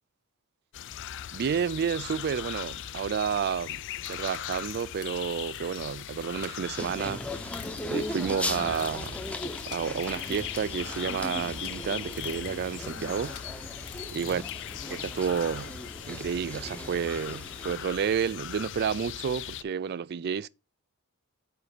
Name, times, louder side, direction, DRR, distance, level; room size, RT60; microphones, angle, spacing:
sound 1, 0.7-19.6, left 11 dB, 55° left, 0.4 m, -39 dB
voice 1, 1.3-3.8 4.1-9.2 9.7-13.5 14.1-14.4 14.9-15.8 16.1-20.5, right 7 dB, 45° right, 0.3 m, -31 dB
sound 2, 4.0-6.5 7.3-15.7, left 9 dB, 75° left, 1.3 m, -49 dB
sound 3, 6.8-17.8, left 1 dB, 5° left, 0.7 m, -38 dB
5.4 x 5.2 x 6.6 m
head